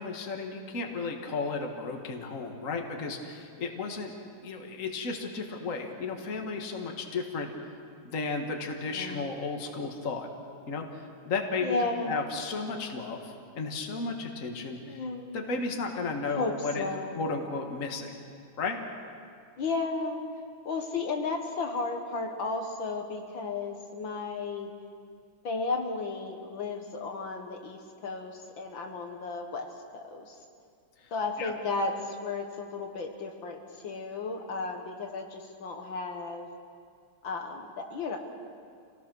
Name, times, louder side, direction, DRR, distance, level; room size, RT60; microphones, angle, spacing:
voice 1, 0.0-4.1 4.4-7.5 8.0-10.3 10.7-10.8 11.3-11.8 12.0-15.0 15.3-16.9 17.2-18.1 18.6-18.8 31.0-31.1 31.4-31.5, left 4 dB, 40° left, 3 dB, 1.9 m, -34 dB
voice 2, 8.9-9.3 11.6-12.1 14.9-15.5 16.4-17.2 19.6-20.2 20.7-24.7 25.4-29.7 29.9-30.4 31.1-36.5 37.2-38.2, left 3 dB, 65° left, 3 dB, 2.2 m, -34 dB
27.5 x 18.0 x 6.2 m, 2.3 s
omnidirectional pair, 2.3 m